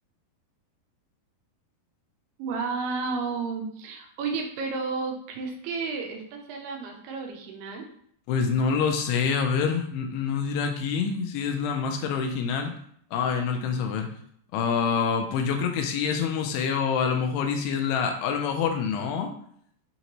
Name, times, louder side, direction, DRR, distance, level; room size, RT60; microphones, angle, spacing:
voice 1, 2.4-7.9, right 4 dB, 80° right, 2 dB, 2.6 m, -32 dB
voice 2, 8.3-12.7 13.1-14.1 14.5-19.3, left 6 dB, 85° left, 4 dB, 2.7 m, -26 dB
6.6 x 2.7 x 3.0 m, 0.66 s
omnidirectional pair, 4.8 m